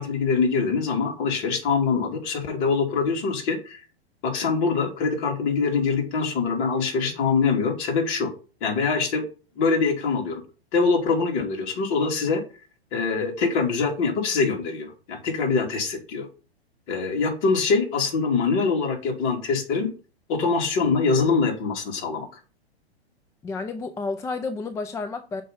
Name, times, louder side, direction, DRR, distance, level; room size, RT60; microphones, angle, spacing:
voice 1, 0.0-3.8 4.2-8.3 8.6-9.2 9.6-10.4 10.7-12.4 12.9-16.3 16.9-19.9 20.3-22.3, left 4 dB, 40° left, 3.0 m, -24 dB
voice 2, 23.4-25.4, left 3 dB, 10° left, 0.4 m, -31 dB
6.5 x 5.4 x 5.3 m
hypercardioid pair, 120°, 32 cm